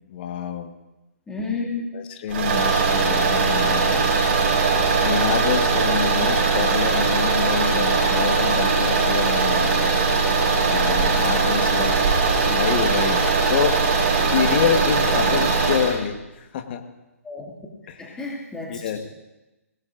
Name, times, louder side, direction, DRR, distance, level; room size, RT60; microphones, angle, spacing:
voice 1, 0.1-0.7 1.9-4.1 5.0-9.9 10.7-14.0 14.2-16.8 17.9-18.2 18.7-19.0, left 8 dB, 40° left, 7 dB, 1.4 m, -27 dB
voice 2, 1.3-1.9 6.2-6.3 15.3-15.5 17.2-17.5 18.0-19.0, left 3 dB, 10° left, -4 dB, 2.4 m, -31 dB
sound 1, 2.3-16.0, right 4 dB, 40° right, 5.5 m, -20 dB
23.5 x 19.0 x 2.6 m, 1.0 s
figure-of-eight pair, 135°, 8 cm